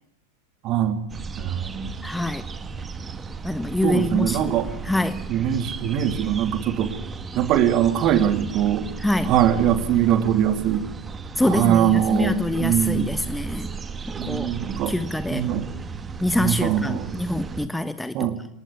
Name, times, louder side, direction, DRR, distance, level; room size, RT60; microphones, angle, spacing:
voice 1, 0.6-1.0 1.4-1.9 3.8-4.7 5.3-6.9 7.3-8.9 9.2-10.8 11.4-13.1 14.1-14.9 15.3-15.7 16.4-17.1 18.1-18.4, right 10 dB, 35° right, 9 dB, 3.2 m, -22 dB
sound 1, 1.1-17.7, right 5 dB, 15° right, 2.2 m, -35 dB
voice 2, 2.0-2.4 3.4-4.5 4.9-5.2 9.0-9.3 11.4-13.7 14.1-14.5 14.9-15.4 16.2-18.1, left 1 dB, 5° left, 12 dB, 1.2 m, -25 dB
28.5 x 19.5 x 9.9 m, 0.75 s
figure-of-eight pair, 90°, 0 cm